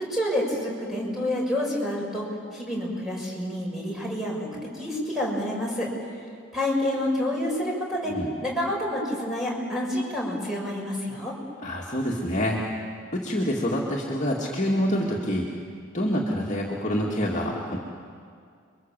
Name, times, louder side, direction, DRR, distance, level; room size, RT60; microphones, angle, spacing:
voice 1, 0.1-2.2 2.5-4.5 4.7-5.9 6.5-8.1 8.4-11.3, left 1 dB, ahead, -4 dB, 6.7 m, -28 dB
voice 2, 11.6-12.6 13.1-15.5 15.9-17.8, equal, 35° left, -3 dB, 2.4 m, -26 dB
30.0 x 23.5 x 7.6 m, 2.2 s
head